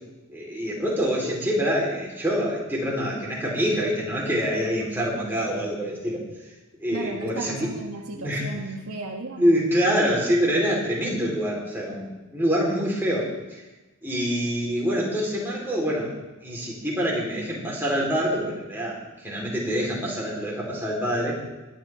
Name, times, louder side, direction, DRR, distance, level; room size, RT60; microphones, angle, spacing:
voice 1, 0.3-6.2 6.8-7.7 8.1-8.5 9.4-13.6 14.0-16.1 16.4-21.4, equal, 10° right, -4 dB, 4.3 m, -25 dB
voice 2, 6.9-9.6, right 3 dB, 90° right, -2 dB, 1.6 m, -35 dB
23.5 x 11.5 x 3.8 m, 1.1 s
head